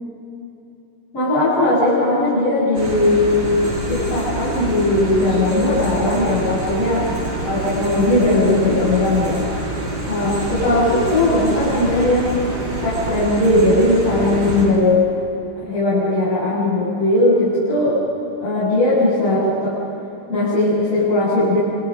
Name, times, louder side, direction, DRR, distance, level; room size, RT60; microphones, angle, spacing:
voice 1, 1.1-9.5 10.1-12.3 12.8-15.1 15.6-18.0 18.4-19.8 20.3-21.6, left 1 dB, 30° left, -12 dB, 9.0 m, -18 dB
sound 1, 2.7-14.6, right 1 dB, 35° right, 7.9 m, -26 dB
28.5 x 28.5 x 5.5 m, 3.0 s
omnidirectional pair, 5.3 m